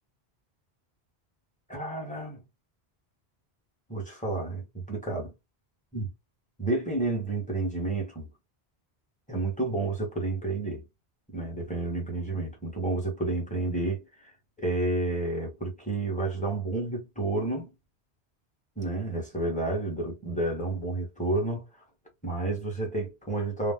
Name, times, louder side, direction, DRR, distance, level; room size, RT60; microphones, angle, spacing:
voice 1, 1.7-2.4 3.9-5.3 5.9-6.1 6.6-8.3 9.3-10.8 11.3-14.3 14.6-17.7 18.8-21.6 22.2-23.7, right 2 dB, 10° left, 1.0 m, -30 dB
2.6 x 2.1 x 3.4 m
omnidirectional pair, 1.1 m